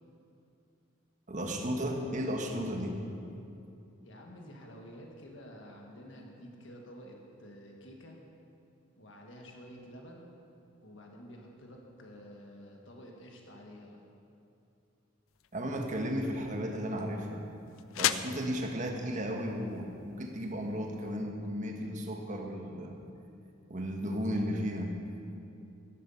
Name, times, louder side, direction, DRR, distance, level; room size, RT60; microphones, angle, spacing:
voice 1, 1.3-3.0 15.5-17.5 18.0-23.0 23.7-24.9, equal, 40° right, 2 dB, 1.4 m, -34 dB
voice 2, 4.0-8.2 9.0-10.3 10.8-14.0, equal, 65° left, 0 dB, 1.6 m, -50 dB
sound 1, 15.3-21.2, left 11 dB, 80° left, 0.4 m, -39 dB
14.0 x 10.5 x 5.7 m, 2.6 s
head